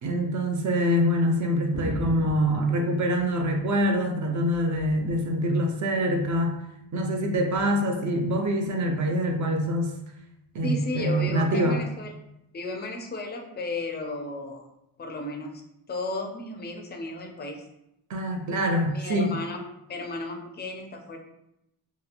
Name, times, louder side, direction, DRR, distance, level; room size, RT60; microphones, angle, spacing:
voice 1, 0.0-6.6 6.9-9.9 10.5-11.8 18.1-19.4, equal, 45° right, 3 dB, 0.4 m, -25 dB
sound 1, 1.7-4.0 4.3-5.3 6.1-6.5 7.5-7.7, equal, 65° right, 0.9 m, -39 dB
voice 2, 10.6-12.1 12.5-14.6 15.0-15.6 15.9-17.6 18.9-19.6 19.9-21.2, left 2 dB, 25° left, 2 dB, 0.3 m, -34 dB
2.9 x 2.2 x 2.4 m, 0.84 s
wide cardioid pair, 120°, 43 cm